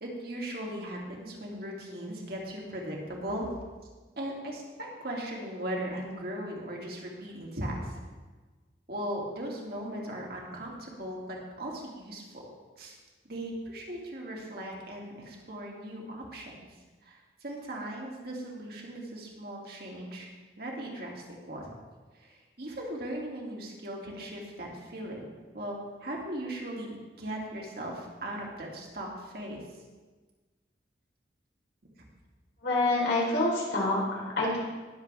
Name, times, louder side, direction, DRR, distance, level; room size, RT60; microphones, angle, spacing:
voice 1, 0.0-3.5 4.2-7.9 8.9-12.4 12.8-13.0 13.2-16.7 17.0-20.3 20.6-21.7 22.2-29.6, right 1 dB, 60° right, -2 dB, 2.4 m, -38 dB
voice 2, 32.6-34.6, left 2 dB, 90° left, -4 dB, 3.9 m, -27 dB
20.0 x 7.4 x 3.5 m, 1.3 s
head